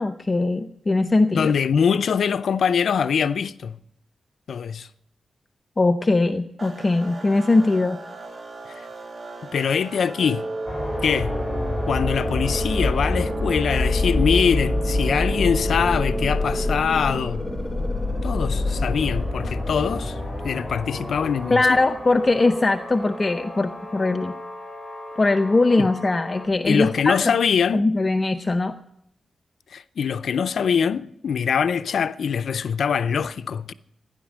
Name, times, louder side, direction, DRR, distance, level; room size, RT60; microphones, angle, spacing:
voice 1, 0.0-1.5 5.8-8.0 21.5-24.3 25.2-27.2 27.7-28.8, left 2 dB, 35° left, 0.6 m, -21 dB
voice 2, 1.3-3.8 4.5-4.9 8.7-8.9 9.5-10.4 11.0-11.4 11.9-17.4 18.2-21.8 25.8-25.9 26.7-27.9 29.7-33.7, left 7 dB, 80° left, 0.5 m, -23 dB
sound 1, 6.6-24.4, right 3 dB, 40° right, 1.7 m, -43 dB
Wind instrument woodwind instrument, 10.2-16.9, right 2 dB, 60° right, 4.3 m, -32 dB
sound 2, 10.7-26.5, left 2 dB, 10° left, 4.1 m, -27 dB
15.0 x 10.5 x 6.2 m
cardioid pair, 85°, 0 cm